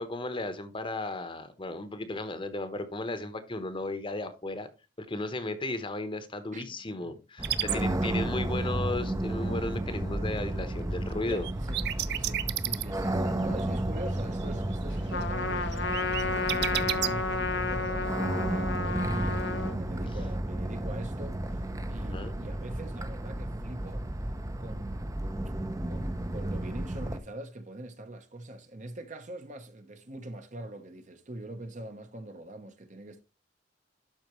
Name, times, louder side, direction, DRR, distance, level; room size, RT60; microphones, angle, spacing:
voice 1, 0.0-4.7 5.0-11.5 22.1-22.3, left 2 dB, 30° left, 1.0 m, -35 dB
voice 2, 6.5-7.1 7.5-8.2 11.2-24.0 24.6-33.2, right 1 dB, 45° right, 1.0 m, -43 dB
sound 1, 7.4-27.2, right 1 dB, 20° right, 0.7 m, -32 dB
sound 2, 7.4-7.8 11.3-13.3 13.6-14.5 14.7-15.2 15.7-17.1, right 13 dB, 65° right, 0.5 m, -31 dB
Trumpet, 15.1-19.8, left 3 dB, 70° left, 0.7 m, -32 dB
12.0 x 4.5 x 3.1 m
head